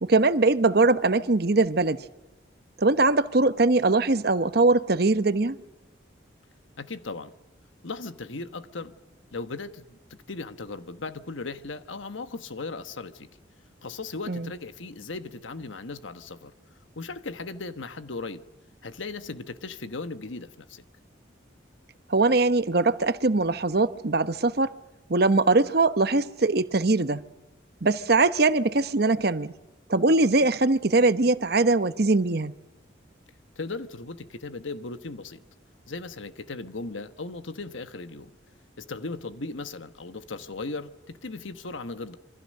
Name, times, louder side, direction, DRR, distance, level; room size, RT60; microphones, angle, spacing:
voice 1, 0.0-2.0 2.8-5.6 14.3-14.5 22.1-24.7 25.1-27.2 27.8-29.5 29.9-32.5, right 3 dB, 55° right, 0.9 m, -22 dB
voice 2, 6.8-7.3 7.8-8.9 9.3-13.3 13.8-16.5 17.0-18.4 18.8-20.8 33.6-35.4 35.9-38.3 38.8-42.2, left 3 dB, 85° left, 1.3 m, -37 dB
27.0 x 25.0 x 6.6 m
head